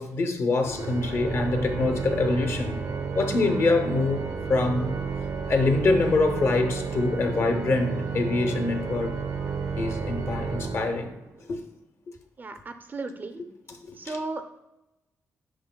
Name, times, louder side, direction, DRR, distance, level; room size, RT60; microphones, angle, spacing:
voice 1, 0.0-2.9 3.1-4.9 5.5-9.5 9.8-11.1 11.5-11.6 13.8-14.2, left 3 dB, 50° left, 0.7 m, -25 dB
Organ, 0.7-11.4, right 5 dB, 75° right, 0.6 m, -32 dB
voice 2, 12.4-13.4 14.0-14.4, right 3 dB, 35° right, 0.4 m, -35 dB
11.0 x 4.3 x 2.2 m
wide cardioid pair, 150°, 6 cm